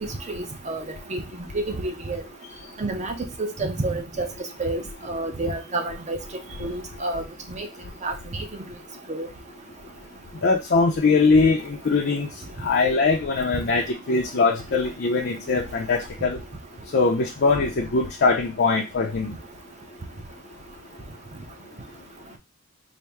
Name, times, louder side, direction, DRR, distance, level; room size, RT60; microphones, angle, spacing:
voice 1, 0.0-0.8 1.1-1.2 1.5-2.2 2.8-4.3 4.6-4.8 5.1-6.2 6.6-7.2 7.5-7.7 8.0-8.4 9.1-9.3, right 2 dB, 35° right, 0.6 m, -29 dB
voice 2, 10.4-12.3 12.6-16.4 16.9-19.3, left 4 dB, 50° left, 0.5 m, -21 dB
4.2 x 2.0 x 3.4 m
head